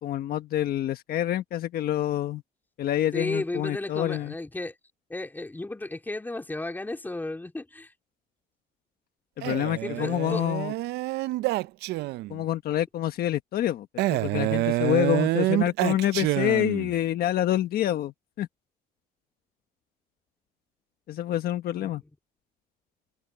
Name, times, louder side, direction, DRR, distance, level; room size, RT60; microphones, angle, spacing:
voice 1, 0.0-2.4 2.8-4.3 9.4-10.7 12.3-18.5 21.1-22.0, left 12 dB, 65° left, 1.3 m, -27 dB
voice 2, 3.1-4.7 5.1-7.9 9.8-10.5 21.8-21.9, left 2 dB, 10° left, 3.2 m, -33 dB
Male speech man speaking, 9.4-12.4 14.0-17.0, right 18 dB, 80° right, 0.5 m, -27 dB
cardioid pair, 110°, 17 cm